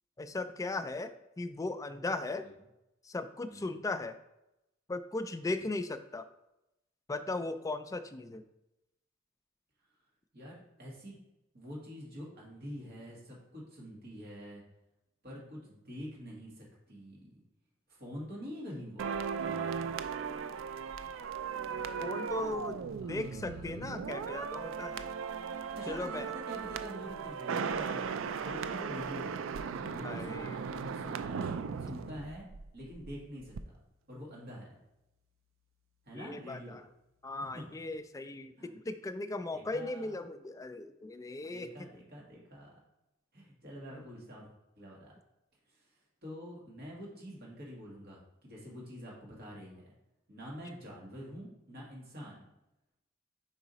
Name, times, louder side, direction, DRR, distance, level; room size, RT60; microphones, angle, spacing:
voice 1, 0.2-1.1 1.4-2.5 3.0-4.2 4.9-6.2 7.1-8.4 22.0-22.8 23.1-25.1 25.9-26.3 27.8-28.0 28.3-28.5 30.0-30.6 36.1-36.8 37.2-41.9 43.9-44.0, left 2 dB, 15° left, 9 dB, 0.3 m, -37 dB
voice 2, 3.5-3.8 5.4-5.7 10.3-11.2 11.5-14.6 15.2-17.4 17.9-19.8 23.0-24.1 25.7-29.3 29.7-31.5 31.8-32.5 32.7-33.8 34.1-34.8 36.1-36.8 37.5-37.6 38.6-38.8 39.5-40.1 41.4-42.7 43.3-44.5 44.8-45.1 45.7-45.9 46.2-49.9 50.3-52.5, equal, 55° right, -4 dB, 1.9 m, -46 dB
sound 1, 19.0-33.1 33.4-33.6, right 6 dB, 80° right, 0.4 m, -37 dB
4.9 x 4.7 x 4.1 m, 0.90 s
head